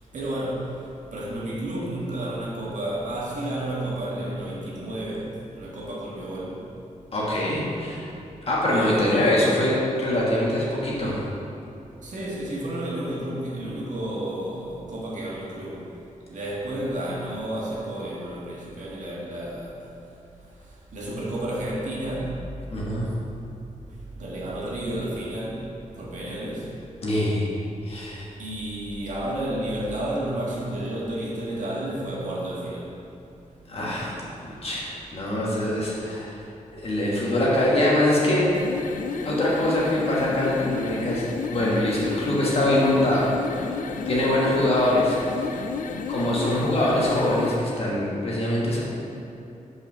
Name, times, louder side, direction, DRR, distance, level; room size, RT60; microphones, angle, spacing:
voice 1, 0.1-6.7 8.7-9.3 12.0-15.9 16.3-19.8 20.6-22.4 24.1-26.8 28.4-33.0, right 1 dB, 65° right, -5 dB, 1.6 m, -31 dB
voice 2, 7.1-8.1 8.5-11.2 22.7-23.1 27.0-27.5 27.8-28.3 33.7-36.3 36.7-38.4 39.2-41.2 41.5-43.8 44.0-45.1 46.1-48.8, left 1 dB, 45° left, -5 dB, 1.6 m, -23 dB
sound 1, 38.4-47.7, left 5 dB, 80° left, 0.4 m, -32 dB
5.5 x 5.0 x 6.1 m, 2.8 s
wide cardioid pair, 170°, 14 cm